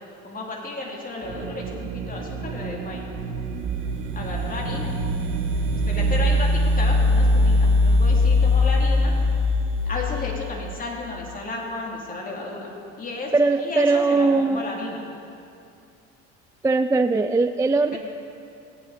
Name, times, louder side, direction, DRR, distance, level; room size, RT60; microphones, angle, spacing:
voice 1, 0.2-3.1 4.1-4.9 5.9-9.2 9.9-12.7 13.0-13.3 13.6-15.0 17.9-18.0, left 2 dB, 25° left, -2 dB, 2.9 m, -33 dB
sound 1, 1.2-6.3, right 5 dB, 60° right, 1.3 m, -33 dB
sound 2, 3.2-10.7, left 2 dB, 75° right, 3.1 m, -21 dB
voice 2, 13.3-14.6 16.6-18.0, right 3 dB, 10° right, 9 dB, 0.3 m, -20 dB
19.5 x 9.1 x 4.1 m, 2.5 s
supercardioid pair, 100°, 32 cm